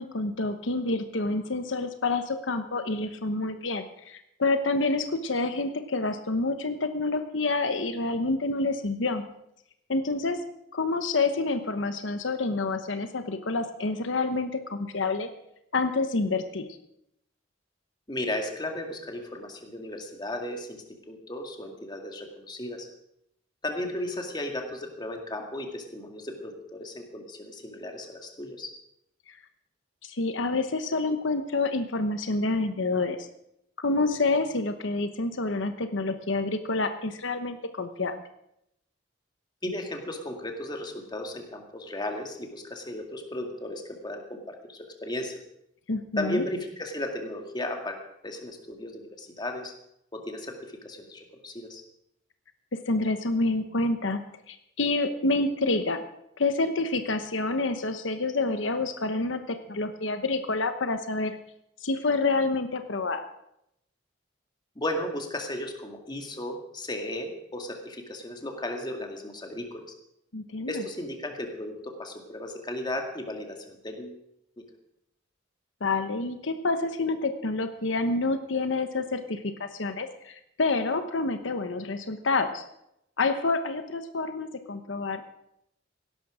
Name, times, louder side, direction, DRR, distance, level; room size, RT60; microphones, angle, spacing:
voice 1, 0.0-9.2 9.9-10.4 10.7-15.3 15.7-16.7 30.1-33.2 33.8-38.2 45.9-46.4 52.7-54.2 54.5-56.0 56.4-61.4 61.8-63.2 70.3-70.8 75.8-82.6 83.2-85.2, left 3 dB, 85° left, 9 dB, 1.0 m, -28 dB
voice 2, 18.1-22.9 23.6-28.7 39.6-45.4 46.2-48.0 48.2-49.7 50.1-50.6 50.8-51.8 64.8-69.9 70.7-74.2, left 1 dB, 25° left, 3 dB, 2.1 m, -35 dB
16.5 x 12.0 x 5.0 m, 0.79 s
head